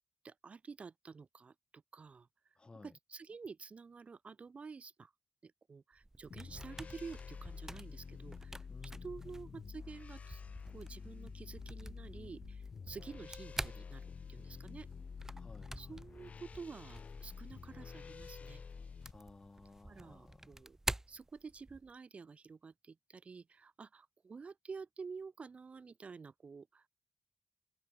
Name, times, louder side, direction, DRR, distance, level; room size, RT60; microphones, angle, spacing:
voice 1, 0.2-2.3 2.8-5.1 5.4-10.4 10.7-14.9 15.8-18.6 19.9-20.8 21.1-26.9, right 5 dB, 60° right, 1.0 m, -50 dB
voice 2, 2.6-2.9 8.7-9.1 15.4-16.0 19.1-20.6, left 3 dB, 40° left, 1.5 m, -57 dB
sound 1, 5.9-21.9, right 1 dB, 20° right, 1.5 m, -48 dB
sound 2, 6.3-19.1, left 5 dB, 65° left, 3.1 m, -49 dB
cardioid pair, 70°, 3 cm